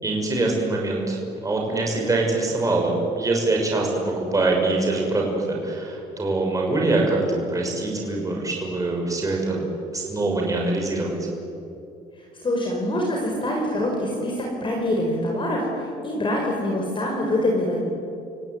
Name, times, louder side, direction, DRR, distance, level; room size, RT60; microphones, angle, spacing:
voice 1, 0.0-9.6 9.9-11.2, right 2 dB, 20° right, -1 dB, 6.3 m, -24 dB
voice 2, 12.4-17.8, left 1 dB, 30° left, -1 dB, 5.5 m, -25 dB
29.5 x 17.0 x 9.4 m, 2.7 s
cardioid pair, 110°, 17 cm